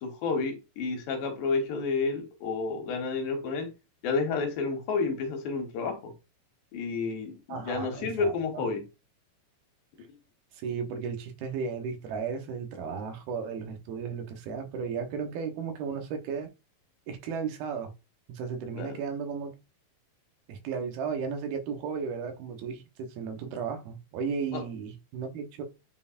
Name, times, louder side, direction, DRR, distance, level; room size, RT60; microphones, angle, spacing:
voice 1, 0.0-3.7 4.0-6.1 6.7-8.8 18.7-19.0 24.5-24.6, left 4 dB, 70° left, 3.0 m, -30 dB
voice 2, 7.5-8.6 10.6-16.5 17.1-17.9 18.3-19.5 20.5-25.6, right 6 dB, 85° right, 3.0 m, -34 dB
9.3 x 4.3 x 2.5 m
omnidirectional pair, 4.3 m